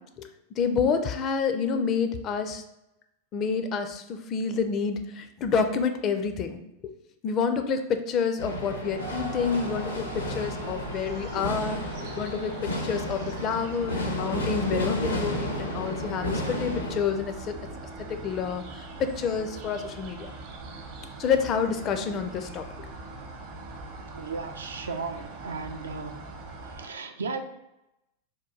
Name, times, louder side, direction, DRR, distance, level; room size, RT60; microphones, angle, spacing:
voice 1, 0.6-2.6 3.3-6.6 7.2-11.8 12.2-17.5 18.1-18.6 19.0-20.3 21.2-22.6, left 6 dB, 30° left, 7 dB, 0.4 m, -28 dB
sound 1, 8.4-17.0, equal, 75° left, 0.7 m, -32 dB
sound 2, 9.0-26.9, right 2 dB, 45° right, 0.7 m, -41 dB
voice 2, 24.1-26.1 26.7-27.4, right 4 dB, 70° right, 6 dB, 0.4 m, -35 dB
3.6 x 2.3 x 4.4 m, 0.90 s
figure-of-eight pair, 90°, 0 cm